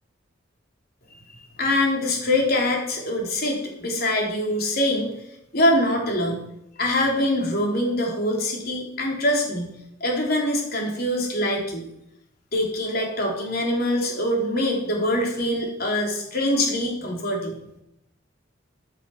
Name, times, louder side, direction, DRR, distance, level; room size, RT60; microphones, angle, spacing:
voice 1, 1.6-5.1 5.5-6.5 6.8-11.9 12.5-17.6, left 1 dB, 55° left, 0 dB, 3.8 m, -24 dB
14.0 x 8.4 x 6.3 m, 0.83 s
head